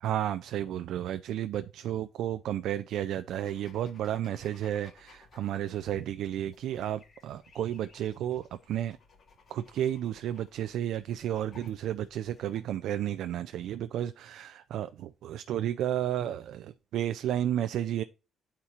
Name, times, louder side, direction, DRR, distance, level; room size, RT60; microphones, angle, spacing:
voice 1, 0.0-9.0 9.5-18.0, right 11 dB, 80° right, 0.3 m, -32 dB
sound 1, 3.4-12.6, left 4 dB, 55° left, 1.7 m, -59 dB
9.5 x 4.3 x 2.5 m
cardioid pair, 90°, 0 cm